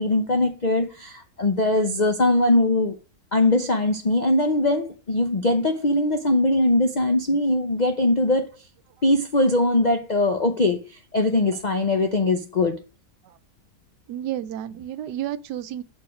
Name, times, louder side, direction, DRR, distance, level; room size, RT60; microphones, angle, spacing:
voice 1, 0.0-3.0 3.3-8.5 9.0-12.8, left 2 dB, 60° left, 0.4 m, -21 dB
voice 2, 14.1-15.8, right 11 dB, 80° right, 1.2 m, -31 dB
6.4 x 4.8 x 5.2 m
omnidirectional pair, 1.8 m